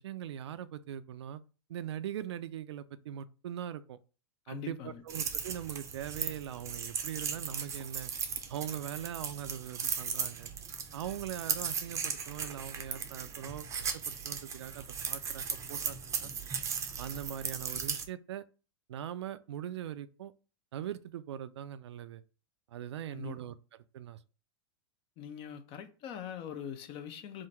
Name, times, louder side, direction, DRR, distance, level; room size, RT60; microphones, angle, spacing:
voice 1, 0.0-1.4 1.7-4.0 4.5-8.1 8.5-10.5 10.9-13.6 14.1-16.3 17.0-18.5 18.9-20.3 20.7-22.2 22.7-23.6 23.9-24.2, right 10 dB, 85° right, 0.4 m, -41 dB
voice 2, 4.5-5.0 23.1-23.4 25.2-27.5, left 8 dB, 40° left, 0.7 m, -42 dB
sound 1, 5.1-18.1, right 6 dB, 20° right, 0.6 m, -37 dB
3.7 x 2.6 x 4.2 m
hypercardioid pair, 120°, 14 cm